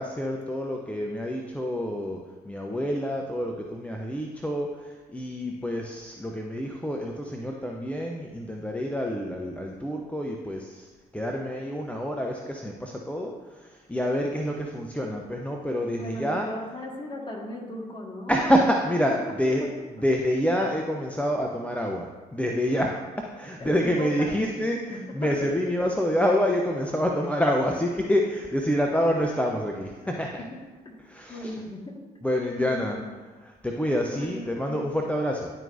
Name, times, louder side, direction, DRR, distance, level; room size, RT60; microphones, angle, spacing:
voice 1, 0.0-10.9 11.1-16.5 18.3-19.6 20.0-30.4 31.0-31.6 32.2-33.0 33.4-35.5, equal, 5° left, 0 dB, 0.7 m, -27 dB
voice 2, 15.9-18.4 23.6-24.4 24.9-25.5 30.0-30.1 30.9-31.0 31.3-32.0 32.5-33.1 34.1-34.9, left 1 dB, 25° left, -1 dB, 1.9 m, -37 dB
10.5 x 4.5 x 2.7 m, 1.4 s
hypercardioid pair, 50°, 20 cm